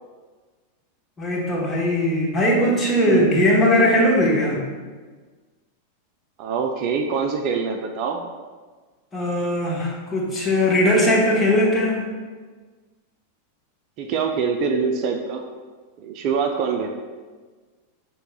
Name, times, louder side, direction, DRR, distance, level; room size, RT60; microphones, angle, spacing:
voice 1, 1.2-4.6 9.1-12.0, left 1 dB, 15° left, -4 dB, 1.1 m, -19 dB
voice 2, 2.6-3.3 6.4-8.2 14.0-15.4 16.0-16.9, right 5 dB, 40° right, 3 dB, 0.4 m, -25 dB
6.5 x 3.5 x 2.3 m, 1.4 s
figure-of-eight pair, 90°, 0 cm